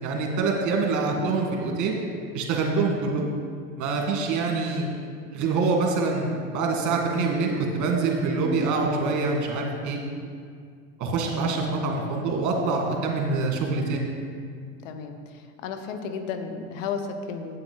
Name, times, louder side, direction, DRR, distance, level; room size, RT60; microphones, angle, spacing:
voice 1, 0.0-2.0 2.3-3.2 3.8-4.9 5.3-10.0 11.0-14.0, right 3 dB, 50° right, 1 dB, 2.0 m, -25 dB
voice 2, 14.8-17.6, left 5 dB, 80° left, 7 dB, 0.9 m, -33 dB
8.7 x 8.3 x 3.9 m, 2.1 s
supercardioid pair, 105°, 38 cm